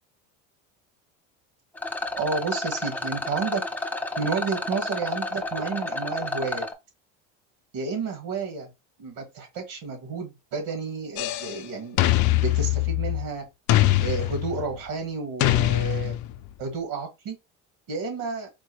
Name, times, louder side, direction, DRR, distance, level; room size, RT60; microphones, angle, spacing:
Rattle, 1.8-6.7, left 2 dB, 5° left, 0.4 m, -31 dB
voice 1, 2.2-3.6 4.2-6.7 7.7-8.7 9.0-12.0 12.4-13.4 14.0-16.2 16.6-17.4 17.9-18.5, right 5 dB, 70° right, 1.9 m, -31 dB
sound 1, 11.2-11.6 12.0-13.3 13.7-14.8 15.4-16.5, left 15 dB, 55° left, 0.5 m, -22 dB
4.4 x 2.3 x 3.2 m
supercardioid pair, 115°, 35 cm